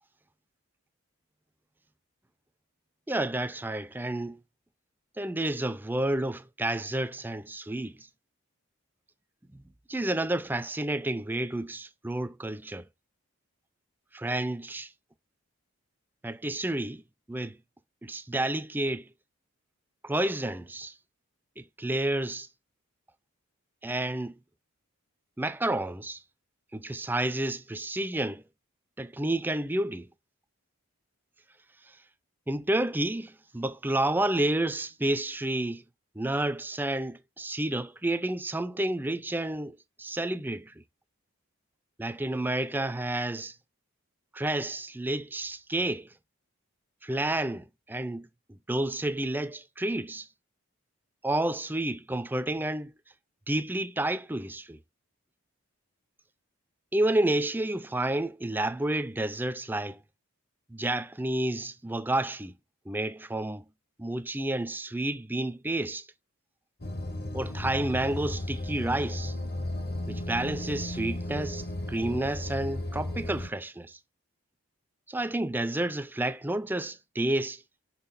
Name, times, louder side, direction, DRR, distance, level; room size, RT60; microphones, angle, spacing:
voice 1, 3.1-4.4 5.2-8.1 9.5-9.6 9.9-12.9 14.1-14.9 16.2-17.0 17.3-17.6 18.0-19.1 20.0-20.9 21.6-22.5 23.8-24.4 25.4-26.2 26.7-28.4 29.0-30.1 31.9-32.0 32.5-35.8 36.2-40.7 42.0-43.6 44.3-46.1 47.0-50.3 51.2-52.9 53.5-54.8 56.9-60.0 60.7-62.5 62.9-63.6 64.0-66.1 67.3-69.4 70.1-74.0 75.1-77.6, right 1 dB, 10° right, 0.4 m, -30 dB
sound 1, 66.8-73.5, left 1 dB, 45° left, 0.8 m, -34 dB
6.0 x 5.7 x 4.1 m
head